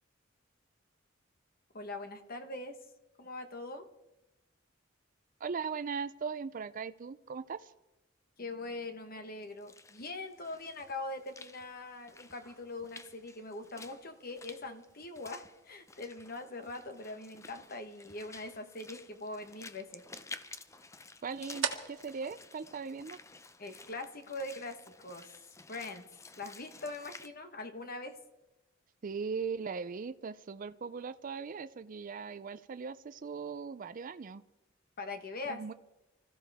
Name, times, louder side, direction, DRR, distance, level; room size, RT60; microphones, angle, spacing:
voice 1, 1.7-2.8 3.2-3.8 8.4-20.0 23.6-25.3 25.7-26.0 26.3-28.2 35.0-35.6, left 2 dB, 50° left, 8 dB, 1.3 m, -42 dB
voice 2, 5.4-7.7 21.2-23.2 29.0-34.4 35.4-35.7, right 5 dB, 45° right, 12 dB, 0.4 m, -39 dB
Walk footsteps / Splash splatter, 9.4-27.3, left 3 dB, 15° left, 0.6 m, -52 dB
sound 1, 9.9-23.6, right 6 dB, 70° right, 1.5 m, -48 dB
25.0 x 14.5 x 3.5 m, 0.99 s
head